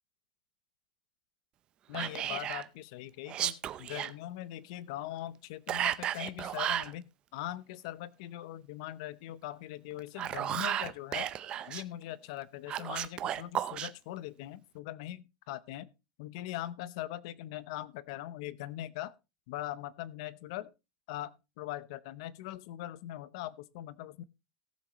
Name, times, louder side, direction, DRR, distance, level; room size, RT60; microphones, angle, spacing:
voice 1, 1.9-11.3 11.7-15.9 16.2-19.1 19.5-20.7 21.1-24.2, left 14 dB, 50° left, 0.7 m, -41 dB
Whispering, 1.9-2.7 3.3-4.1 5.7-6.9 10.0-11.8 12.7-13.9, right 11 dB, 25° right, 0.6 m, -33 dB
18.0 x 7.5 x 3.0 m
supercardioid pair, 175°, 4 cm